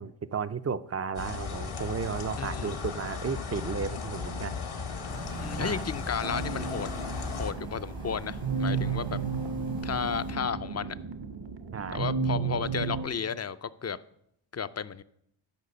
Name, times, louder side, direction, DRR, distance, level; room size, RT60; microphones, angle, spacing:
voice 1, 0.0-4.6 5.6-5.8 11.7-12.1, right 6 dB, 30° right, 0.4 m, -34 dB
sound 1, 1.2-7.5, left 5 dB, 80° left, 1.3 m, -36 dB
voice 2, 2.4-2.8 5.4-6.9 7.4-9.2 9.8-11.0 11.9-14.0 14.5-15.0, left 7 dB, 35° left, 0.4 m, -33 dB
sound 2, 5.1-10.3, right 2 dB, 85° right, 4.3 m, -42 dB
sound 3, 6.2-13.1, right 5 dB, 60° right, 0.9 m, -33 dB
12.5 x 5.0 x 6.6 m
wide cardioid pair, 65°, 50 cm